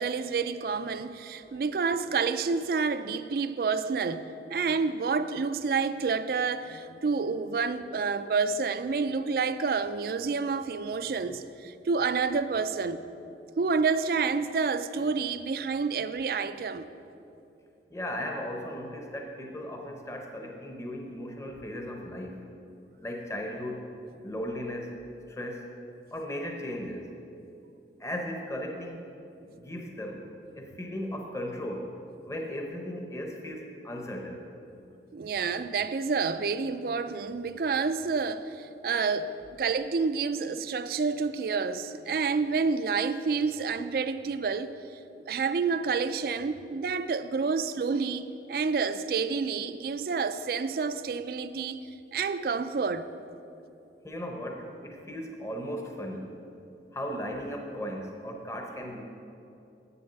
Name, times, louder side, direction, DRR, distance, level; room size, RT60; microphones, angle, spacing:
voice 1, 0.0-13.0 13.6-16.9 35.1-44.7 45.3-51.8 52.1-53.1, right 5 dB, 55° right, 0.3 m, -29 dB
voice 2, 17.9-22.4 23.0-23.8 24.2-25.0 25.3-25.7 26.1-27.1 28.0-29.1 29.4-30.2 30.5-31.9 32.2-34.4 54.0-56.4 56.9-59.0, equal, 15° left, 0.7 m, -36 dB
7.8 x 7.0 x 6.5 m
head